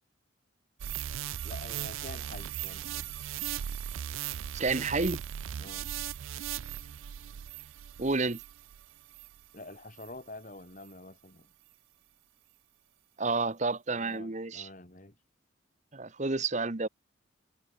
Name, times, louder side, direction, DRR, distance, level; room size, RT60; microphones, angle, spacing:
sound 1, 0.8-9.5 10.0-10.1, right 10 dB, 75° right, 0.4 m, -38 dB
voice 1, 1.4-3.1 5.6-5.9 9.5-11.5 13.9-15.2, left 2 dB, 40° left, 2.7 m, -47 dB
voice 2, 4.5-5.2 8.0-8.4 13.2-14.7 15.9-16.9, right 3 dB, 35° right, 1.0 m, -30 dB
head